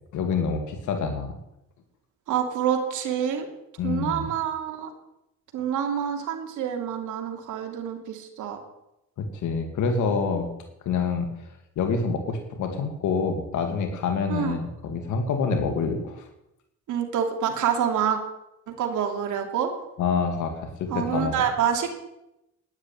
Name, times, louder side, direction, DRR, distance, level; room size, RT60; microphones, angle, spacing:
voice 1, 0.1-1.3 3.8-4.3 9.2-10.5 10.9-11.3 11.8-16.3 20.0-21.3, left 5 dB, 80° left, 5 dB, 2.3 m, -27 dB
voice 2, 2.3-3.5 3.8-4.9 5.5-8.6 14.3-14.5 16.9-18.2 18.8-19.7 20.9-21.9, right 8 dB, 80° right, 3 dB, 2.8 m, -27 dB
12.0 x 10.5 x 9.0 m, 0.87 s
cardioid pair, 90°, 30 cm